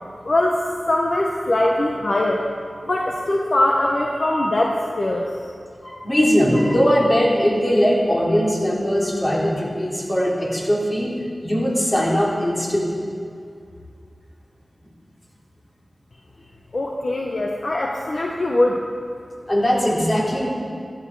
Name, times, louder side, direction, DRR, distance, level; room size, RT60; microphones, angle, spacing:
voice 1, 0.2-2.4 2.8-5.3 16.7-18.8, left 1 dB, 60° left, 0 dB, 1.1 m, -21 dB
voice 2, 5.8-12.9 19.5-20.5, equal, 30° left, -3 dB, 3.2 m, -20 dB
13.5 x 12.0 x 4.8 m, 2.3 s
cardioid pair, 40°, 0 cm